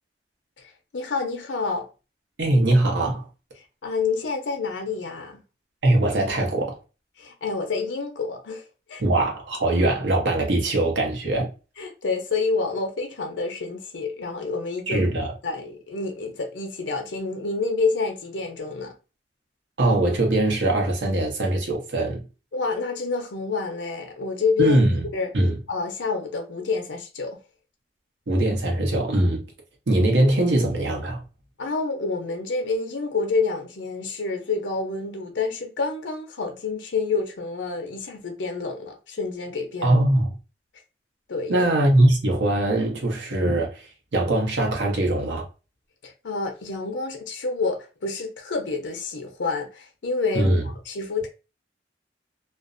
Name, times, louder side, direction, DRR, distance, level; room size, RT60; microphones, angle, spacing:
voice 1, 0.6-1.9 3.8-5.4 7.2-8.6 8.9-9.0 11.8-15.0 15.4-18.9 22.5-24.8 25.1-25.3 25.7-27.4 31.6-40.0 41.3-41.7 46.0-51.3, left 4 dB, 90° left, 0.6 m, -28 dB
voice 2, 2.4-3.3 5.8-6.8 9.0-11.5 14.9-15.3 19.8-22.2 24.6-25.1 25.3-25.6 28.3-29.4 29.9-31.2 39.8-40.3 41.5-45.5 50.3-50.6, right 1 dB, 85° right, 0.8 m, -21 dB
2.5 x 2.0 x 2.4 m
head